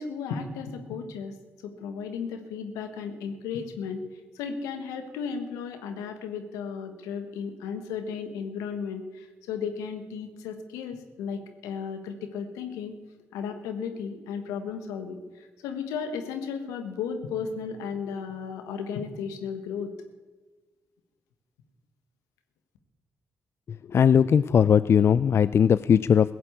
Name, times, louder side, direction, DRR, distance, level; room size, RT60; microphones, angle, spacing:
voice 1, 0.0-1.3 1.6-4.0 4.3-12.9 13.3-19.9, left 6 dB, 85° left, 7 dB, 1.3 m, -34 dB
voice 2, 23.9-26.3, left 8 dB, 50° left, 16 dB, 0.3 m, -19 dB
16.0 x 7.6 x 8.2 m, 1.3 s
hypercardioid pair, 45°, 5 cm